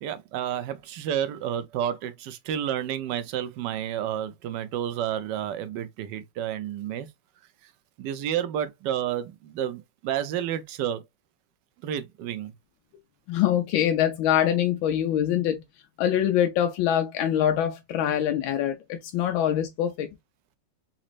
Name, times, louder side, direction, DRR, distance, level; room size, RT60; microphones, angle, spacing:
voice 1, 0.0-7.1 7.6-7.7 8.0-11.0 11.8-12.5, right 10 dB, 75° right, 1.1 m, -30 dB
voice 2, 13.3-15.6 16.0-20.1, left 10 dB, 90° left, 1.4 m, -24 dB
4.2 x 3.0 x 2.4 m
omnidirectional pair, 2.1 m